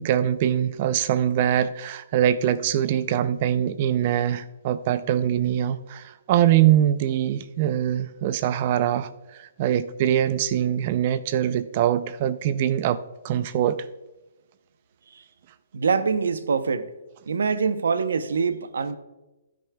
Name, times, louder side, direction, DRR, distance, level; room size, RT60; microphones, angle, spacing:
voice 1, 0.0-13.8, right 11 dB, 40° right, 0.4 m, -23 dB
voice 2, 15.7-16.9 17.3-19.0, right 5 dB, 85° right, 0.7 m, -24 dB
15.5 x 9.2 x 2.3 m
hypercardioid pair, 145°, 0 cm